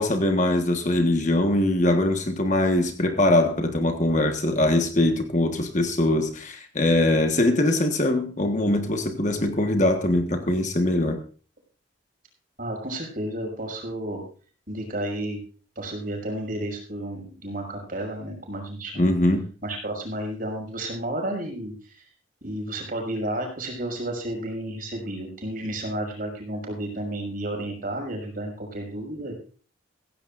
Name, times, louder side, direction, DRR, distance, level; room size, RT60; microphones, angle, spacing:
voice 1, 0.0-11.2 19.0-19.5, left 1 dB, 40° left, 5 dB, 1.5 m, -22 dB
voice 2, 12.6-14.2 14.7-15.4 15.8-19.1 19.6-22.0 22.4-29.3, right 1 dB, 45° right, 1 dB, 5.8 m, -32 dB
16.0 x 16.0 x 2.6 m, 0.39 s
head